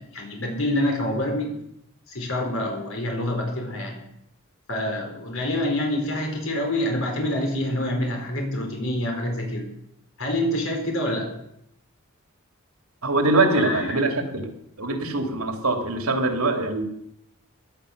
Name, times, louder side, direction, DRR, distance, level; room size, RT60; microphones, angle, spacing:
voice 1, 0.0-1.5 2.1-4.0 4.7-9.6 10.2-11.3 13.5-14.0, left 1 dB, 65° left, 1 dB, 4.6 m, -26 dB
voice 2, 13.0-14.5 14.8-16.8, right 2 dB, 80° right, 4 dB, 2.8 m, -23 dB
17.0 x 11.0 x 6.6 m, 0.77 s
head